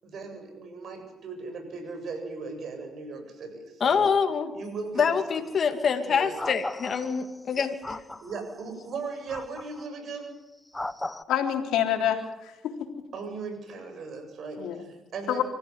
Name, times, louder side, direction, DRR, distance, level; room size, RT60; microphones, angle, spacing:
voice 1, 0.0-4.1 4.5-5.1 6.0-6.4 8.2-10.3 13.1-15.4, right 4 dB, 60° right, 5 dB, 7.8 m, -37 dB
voice 2, 3.8-4.5 4.9-8.0, left 6 dB, 50° left, 6 dB, 2.7 m, -25 dB
sound 1, 5.4-5.6 6.4-7.4 7.8-8.4 9.3-9.9 10.7-11.2, left 2 dB, 15° left, 1.1 m, -36 dB
voice 3, 11.3-12.9 14.6-14.8 15.3-15.4, left 10 dB, 85° left, 4 dB, 3.6 m, -27 dB
25.5 x 15.0 x 9.8 m, 0.99 s
cardioid pair, 85°, 0 cm